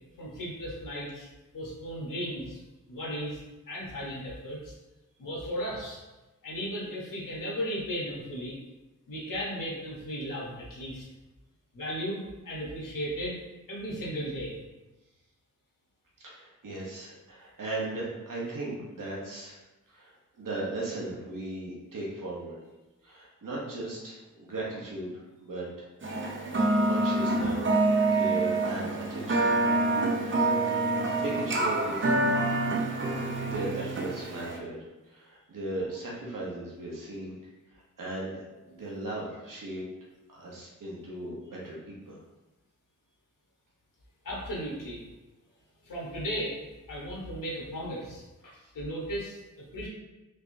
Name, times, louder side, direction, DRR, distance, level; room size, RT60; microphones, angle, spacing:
voice 1, 0.2-1.3 1.5-2.6 2.9-3.4 3.7-4.7 5.2-6.0 6.4-8.6 9.1-11.1 11.7-13.4 13.7-14.6 38.0-38.3 38.7-38.8 44.2-45.0 45.8-46.6 46.9-49.9, equal, 90° left, -4 dB, 0.9 m, -36 dB
voice 2, 16.2-19.6 19.9-22.6 23.0-26.2 26.8-27.7 28.1-29.8 31.2-32.4 33.4-34.8 35.0-37.4 37.7-38.4 38.8-39.8 40.3-42.2 48.5-48.7, right 2 dB, 85° right, -5 dB, 0.9 m, -37 dB
sound 1, 26.0-34.6, right 2 dB, 40° right, 0.5 m, -26 dB
3.4 x 3.2 x 2.6 m, 1.1 s
wide cardioid pair, 80°, 32 cm